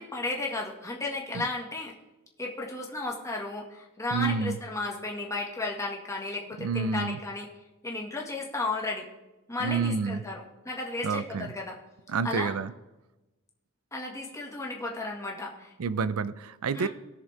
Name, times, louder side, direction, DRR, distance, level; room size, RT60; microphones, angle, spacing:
voice 1, 0.0-1.9 2.4-7.5 7.8-9.1 9.5-11.8 12.2-12.5 13.9-15.7 16.7-16.9, left 2 dB, 15° left, -1 dB, 1.9 m, -34 dB
voice 2, 4.1-4.6 6.6-7.2 9.6-10.2 11.0-11.5 12.1-12.7 15.8-16.9, right 5 dB, 85° right, 15 dB, 0.5 m, -29 dB
19.5 x 6.5 x 3.5 m, 1.0 s
head